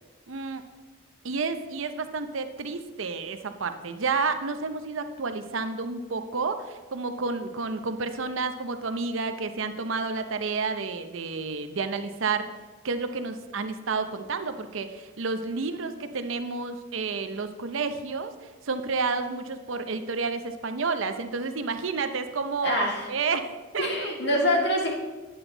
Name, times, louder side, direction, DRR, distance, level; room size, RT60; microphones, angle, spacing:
voice 1, 0.3-0.6 1.2-12.5 12.8-22.8 23.1-24.6, right 4 dB, 75° right, 9 dB, 0.7 m, -30 dB
voice 2, 22.6-23.1 23.8-24.9, left 1 dB, 55° left, -1 dB, 1.9 m, -25 dB
9.4 x 8.0 x 3.9 m, 1.2 s
head